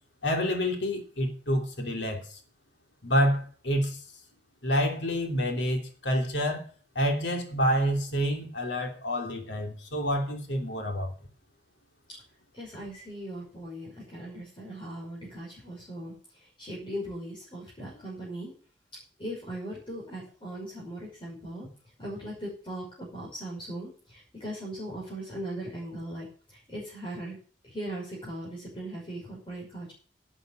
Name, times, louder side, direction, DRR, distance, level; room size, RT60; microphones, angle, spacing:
voice 1, 0.2-2.4 3.0-4.0 4.6-6.6 6.9-11.1, equal, 90° left, 3.0 m, -28 dB
voice 2, 12.5-18.5 19.2-21.7 22.0-27.4 27.6-29.9, right 1 dB, 30° left, 5.8 m, -39 dB
11.5 x 8.2 x 7.6 m
head